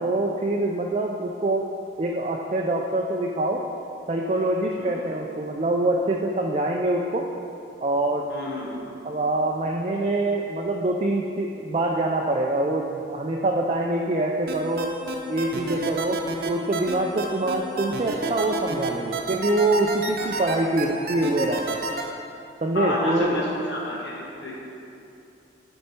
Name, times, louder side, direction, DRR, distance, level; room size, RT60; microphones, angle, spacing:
voice 1, 0.0-1.7 2.0-3.6 4.1-7.3 7.8-8.3 9.0-14.9 15.3-16.2 16.5-21.8 22.6-23.4, right 2 dB, 35° right, 0 dB, 0.4 m, -25 dB
voice 2, 8.3-8.8 20.2-20.3 22.7-24.5, left 1 dB, 70° left, -4 dB, 1.1 m, -30 dB
sound 1, 14.5-22.0, right 3 dB, 55° right, 0.7 m, -29 dB
8.5 x 4.5 x 4.4 m, 2.7 s
head